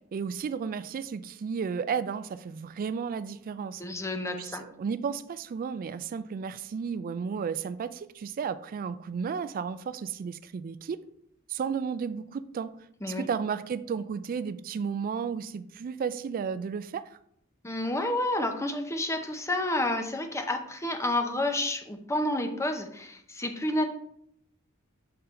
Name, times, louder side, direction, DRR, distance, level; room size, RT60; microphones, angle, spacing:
voice 1, 0.1-3.8 4.4-11.0 11.5-12.7 13.1-17.1, right 6 dB, 40° right, 14 dB, 0.3 m, -33 dB
voice 2, 3.8-4.6 13.0-13.3 17.6-23.9, left 1 dB, 15° left, 5 dB, 0.6 m, -30 dB
6.6 x 3.9 x 4.4 m, 0.71 s
head